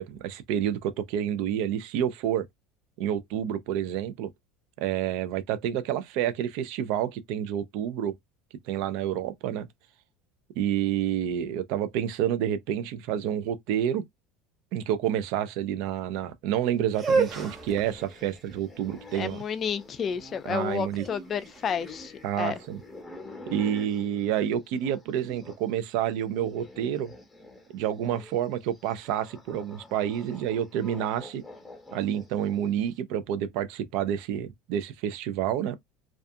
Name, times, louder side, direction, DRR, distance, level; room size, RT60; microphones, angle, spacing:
voice 1, 0.0-2.4 3.0-4.3 4.8-8.1 8.7-9.7 10.6-14.0 14.7-19.4 20.4-21.0 22.2-22.8 23.5-27.1 27.7-31.4 31.9-35.8, right 10 dB, 70° right, 0.4 m, -29 dB
sound 1, 16.9-25.7 26.0-32.8, left 1 dB, 5° left, 0.9 m, -48 dB
sound 2, 16.9-22.8, right 4 dB, 30° right, 1.0 m, -32 dB
voice 2, 19.1-22.6, left 7 dB, 30° left, 0.3 m, -31 dB
2.4 x 2.3 x 2.6 m
supercardioid pair, 135°, 0 cm